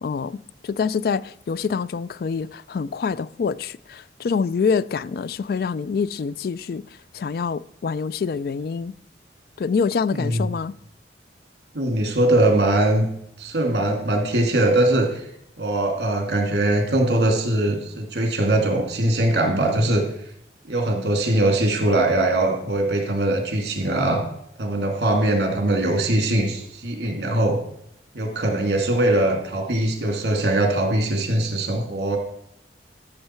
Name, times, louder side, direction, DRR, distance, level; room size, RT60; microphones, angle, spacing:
voice 1, 0.0-6.8 7.1-8.9 9.6-10.7, left 5 dB, 55° left, 0.3 m, -26 dB
voice 2, 10.1-10.5 11.7-13.0 13.4-15.2 15.6-20.0 20.7-24.2 24.6-27.6 28.1-32.2, right 1 dB, 65° right, 2.3 m, -21 dB
13.5 x 6.6 x 4.4 m
head